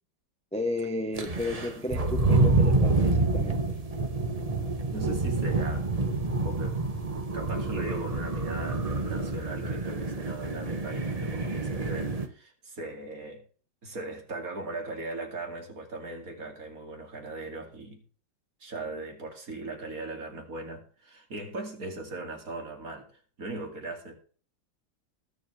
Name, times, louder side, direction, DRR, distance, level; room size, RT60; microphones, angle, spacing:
voice 1, 0.5-3.8, left 2 dB, 10° left, 0.4 m, -33 dB
sound 1, 1.1-12.3, right 3 dB, 25° right, 1.1 m, -27 dB
voice 2, 4.9-5.9 6.4-6.8 7.3-13.4 13.8-18.0 18.6-23.1 23.4-24.1, right 2 dB, 50° right, 2.9 m, -39 dB
20.5 x 7.5 x 3.3 m
omnidirectional pair, 2.0 m